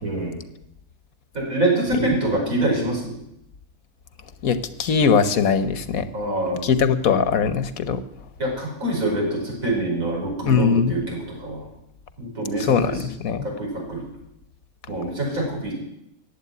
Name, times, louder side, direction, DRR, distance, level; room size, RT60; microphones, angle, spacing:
voice 1, 0.0-0.4 1.3-3.2 6.1-6.6 8.4-11.6 12.2-13.0 13.4-14.0 14.9-15.7, right 1 dB, 80° right, -1 dB, 5.7 m, -25 dB
voice 2, 4.4-6.1 6.5-8.0 10.4-11.0 12.6-13.5, left 6 dB, 90° left, 11 dB, 1.5 m, -21 dB
15.0 x 9.3 x 9.5 m, 0.83 s
omnidirectional pair, 1.4 m